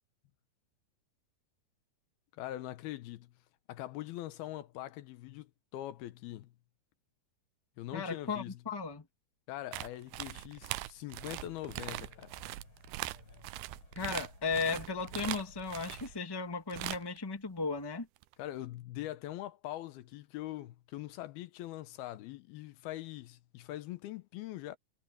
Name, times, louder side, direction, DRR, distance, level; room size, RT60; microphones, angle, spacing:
voice 1, 2.4-3.3 3.7-6.5 7.8-8.6 9.5-12.3 18.4-24.8, left 14 dB, 85° left, 2.8 m, -42 dB
voice 2, 7.9-9.0 13.9-18.1, left 4 dB, 10° left, 1.3 m, -36 dB
sound 1, 9.7-16.1 16.7-17.2 18.2-18.3, right 17 dB, 90° right, 2.6 m, -41 dB
sound 2, 11.2-16.2, left 2 dB, 30° left, 7.9 m, -57 dB
omnidirectional pair, 4.4 m